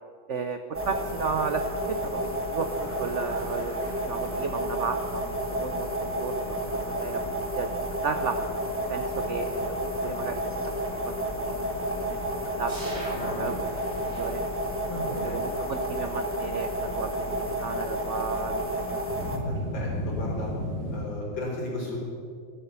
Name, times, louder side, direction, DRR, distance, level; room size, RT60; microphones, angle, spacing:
voice 1, 0.3-6.4 7.0-7.8 8.0-8.4 8.9-12.2 12.6-13.0 13.4-14.5 15.2-19.0, right 5 dB, 75° right, 8 dB, 0.6 m, -34 dB
sound 1, 0.7-19.4, equal, 10° right, 1.1 m, -31 dB
sound 2, 2.6-7.6 7.9-8.2 8.6-9.3 9.8-9.9 10.2-10.4 10.7-11.1 11.7-15.1 15.3-15.4 19.0-21.0, left 1 dB, 50° left, 4.2 m, -38 dB
sound 3, 9.2-14.3, equal, 60° right, 4.1 m, -42 dB
voice 2, 14.9-15.4 19.4-20.5 20.9-22.0, left 1 dB, 70° left, -3 dB, 4.7 m, -35 dB
14.5 x 10.5 x 6.8 m, 2.3 s
omnidirectional pair, 2.1 m